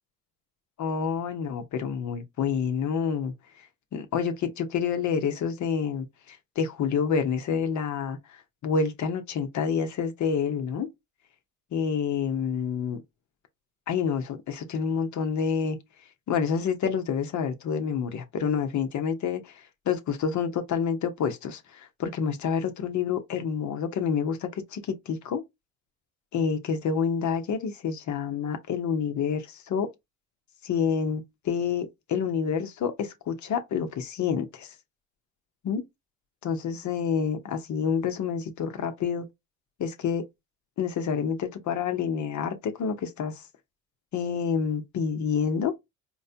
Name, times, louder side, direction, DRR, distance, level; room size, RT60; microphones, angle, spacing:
voice 1, 0.8-3.3 3.9-10.9 11.7-13.0 13.9-15.8 16.3-25.4 26.3-29.9 30.6-34.7 35.6-35.8 36.4-39.3 39.8-40.2 40.8-43.4 44.1-45.7, left 6 dB, 55° left, 0.9 m, -28 dB
4.6 x 2.2 x 2.7 m
supercardioid pair, 75°, 34 cm